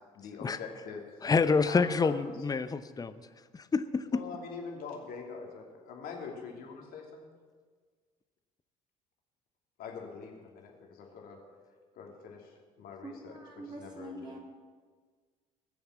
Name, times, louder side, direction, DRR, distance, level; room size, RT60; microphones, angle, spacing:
voice 1, 0.1-1.0 1.7-2.1 4.1-7.3 9.8-11.4 12.0-13.4 13.8-14.2, left 5 dB, 60° left, 1 dB, 2.9 m, -44 dB
voice 2, 1.2-3.2 3.5-4.2, left 4 dB, 20° left, 12 dB, 0.8 m, -27 dB
voice 3, 13.0-14.4, right 1 dB, 25° right, -1 dB, 3.8 m, -44 dB
20.0 x 7.1 x 7.4 m, 1.6 s
hypercardioid pair, 55°, 17 cm